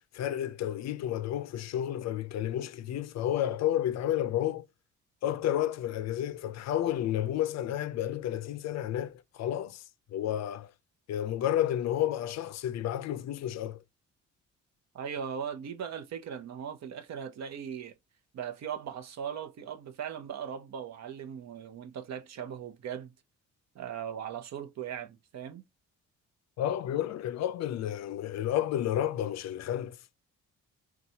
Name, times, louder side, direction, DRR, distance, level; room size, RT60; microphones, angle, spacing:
voice 1, 0.1-4.7 5.2-9.8 10.1-10.7 11.1-13.8 26.6-30.0, left 11 dB, 60° left, 0.4 m, -31 dB
voice 2, 14.9-17.9 18.3-23.1 23.7-25.6, right 8 dB, 60° right, 0.8 m, -39 dB
3.9 x 2.3 x 2.7 m
cardioid pair, 90°, 30 cm